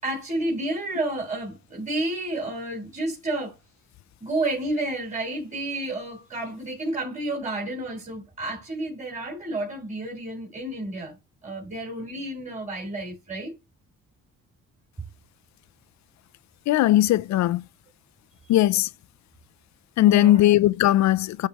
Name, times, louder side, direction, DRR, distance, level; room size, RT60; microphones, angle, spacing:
voice 1, 0.0-3.6 4.2-11.1 11.4-13.5 20.0-20.4, right 2 dB, 25° right, 4.0 m, -30 dB
voice 2, 16.7-17.6 18.5-18.9 20.0-21.5, left 14 dB, 65° left, 0.5 m, -19 dB
12.5 x 4.7 x 2.9 m
cardioid pair, 90°, 30 cm